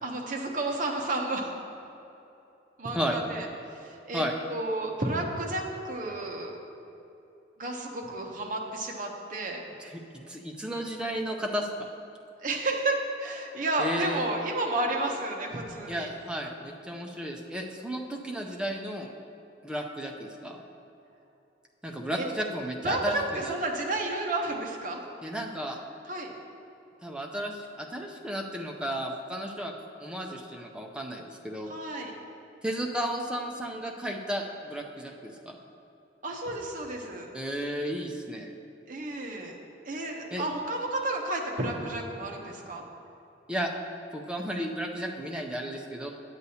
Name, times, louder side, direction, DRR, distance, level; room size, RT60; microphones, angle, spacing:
voice 1, 0.0-1.5 2.8-4.2 4.5-6.6 7.6-9.6 12.4-16.1 22.2-22.3 22.8-25.0 26.1-26.3 31.6-32.1 36.2-37.3 38.9-39.6 39.8-42.8, right 2 dB, 45° right, 1 dB, 0.8 m, -31 dB
voice 2, 10.3-11.7 13.8-14.2 15.9-19.1 19.6-20.6 21.8-23.5 25.2-25.8 27.0-29.7 30.0-31.7 32.6-35.6 37.3-38.5 40.3-40.4 43.5-43.7 44.1-46.1, equal, 5° right, 1 dB, 0.5 m, -33 dB
9.2 x 8.1 x 2.8 m, 2.8 s
head